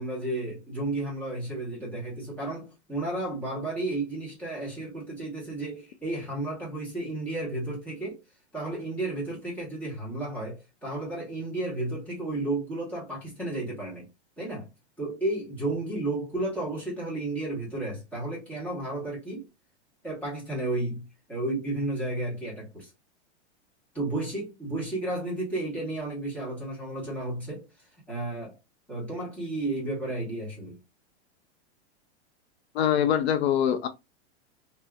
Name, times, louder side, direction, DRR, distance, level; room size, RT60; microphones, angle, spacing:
voice 1, 0.0-8.2 8.5-14.1 14.4-14.7 15.0-19.5 20.0-22.9 23.9-28.6 28.9-30.8, right 2 dB, 5° left, 1.2 m, -32 dB
voice 2, 32.7-33.9, left 9 dB, 70° left, 0.5 m, -23 dB
3.1 x 2.7 x 2.3 m
supercardioid pair, 170°, 34 cm